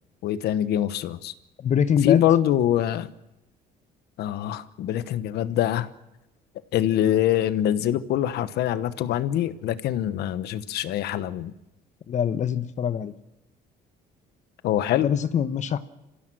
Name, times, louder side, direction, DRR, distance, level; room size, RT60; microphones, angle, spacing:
voice 1, 0.2-1.3 2.0-3.1 4.2-5.9 6.7-11.5 14.6-15.1, left 11 dB, 75° left, 1.1 m, -24 dB
voice 2, 1.6-2.2 12.1-13.1 15.0-15.9, left 8 dB, 45° left, 1.1 m, -24 dB
25.5 x 16.0 x 7.7 m
cardioid pair, 110°, 17 cm